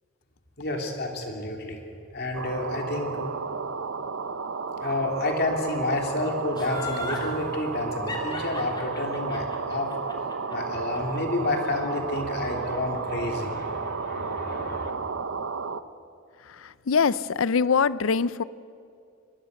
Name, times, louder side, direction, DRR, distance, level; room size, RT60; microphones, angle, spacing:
voice 1, 0.6-1.8 2.1-3.3 4.8-14.9, left 2 dB, 55° left, 2 dB, 3.1 m, -30 dB
sound 1, 2.3-15.8, right 5 dB, 75° right, 0.8 m, -32 dB
Laughter, 6.6-7.3 8.1-11.2 11.5-11.6, left 2 dB, 20° left, 3.1 m, -36 dB
voice 2, 16.4-18.4, left 5 dB, 75° left, 18 dB, 0.5 m, -24 dB
23.5 x 21.0 x 6.6 m, 2.5 s
head